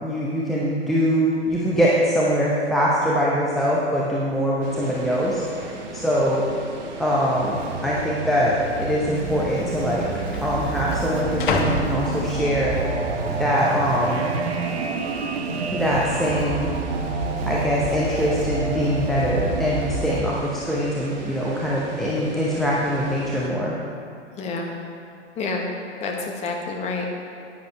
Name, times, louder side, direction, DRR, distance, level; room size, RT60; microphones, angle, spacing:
voice 1, 0.0-6.4 7.0-10.1 10.4-12.8 13.3-14.3 15.7-16.7 17.5-23.7, equal, ahead, -6 dB, 0.7 m, -23 dB
sound 1, 4.0-4.1 4.3-4.8 5.5-5.6 6.3-6.8 7.1-7.2 8.1-8.2 9.2-9.3 9.6-12.8 13.3-13.7, left 4 dB, 45° left, 1.1 m, -31 dB
sound 2, 4.6-23.5, right 3 dB, 40° right, 1.5 m, -38 dB
sound 3, 7.3-20.2, right 4 dB, 60° right, 1.0 m, -29 dB
voice 2, 24.4-24.7 25.4-25.7 26.0-27.1, left 3 dB, 20° left, 1 dB, 1.3 m, -28 dB
10.0 x 9.6 x 4.6 m, 2.6 s
figure-of-eight pair, 110°, 36 cm